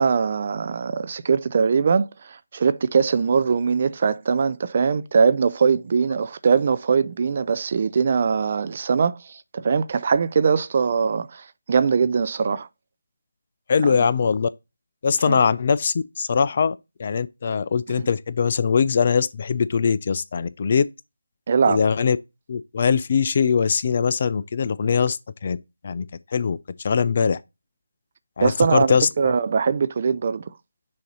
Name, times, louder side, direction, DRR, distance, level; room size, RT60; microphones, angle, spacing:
voice 1, 0.0-12.7 13.8-14.0 15.3-15.4 18.0-18.1 21.5-21.8 28.4-30.5, right 5 dB, 35° right, 0.4 m, -21 dB
voice 2, 13.7-14.5 15.0-20.9 21.7-22.2 22.5-25.6 25.8-26.1 26.3-26.6 26.8-27.4 28.4-29.3, left 6 dB, 35° left, 0.4 m, -21 dB
6.4 x 2.7 x 5.4 m
figure-of-eight pair, 165°, 0 cm